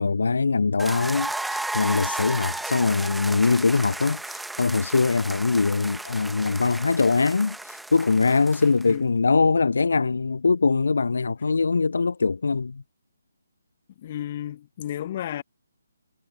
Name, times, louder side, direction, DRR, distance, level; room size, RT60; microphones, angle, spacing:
voice 1, 0.0-12.8, left 4 dB, 60° left, 0.5 m, -22 dB
sound 1, 0.8-8.9, right 2 dB, ahead, 1.4 m, -34 dB
voice 2, 14.0-15.4, left 11 dB, 35° left, 1.4 m, -33 dB
figure-of-eight pair, 145°, 0 cm